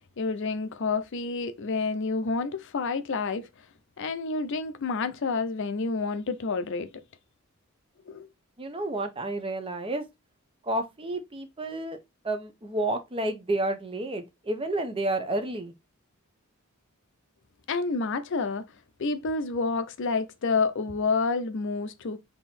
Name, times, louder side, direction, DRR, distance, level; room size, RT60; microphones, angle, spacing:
voice 1, 0.2-3.5 4.0-6.9 8.1-8.3 17.7-18.6 19.0-22.2, left 4 dB, 60° left, 0.5 m, -29 dB
voice 2, 8.6-10.0 10.6-12.0 12.2-15.7, right 1 dB, 25° right, 0.7 m, -30 dB
3.7 x 2.9 x 4.2 m
head